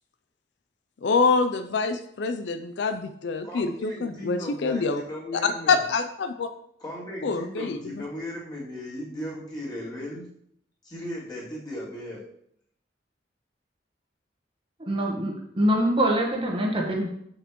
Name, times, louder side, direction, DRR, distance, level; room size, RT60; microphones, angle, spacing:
voice 1, 1.0-5.0 5.4-6.5 7.2-7.8, left 4 dB, 70° left, 9 dB, 0.4 m, -25 dB
voice 2, 3.4-5.8 6.8-10.3 10.8-12.2, left 1 dB, 25° left, -6 dB, 2.7 m, -37 dB
voice 3, 14.8-17.1, right 1 dB, 30° right, -1 dB, 1.2 m, -24 dB
7.2 x 6.6 x 3.0 m, 0.70 s
head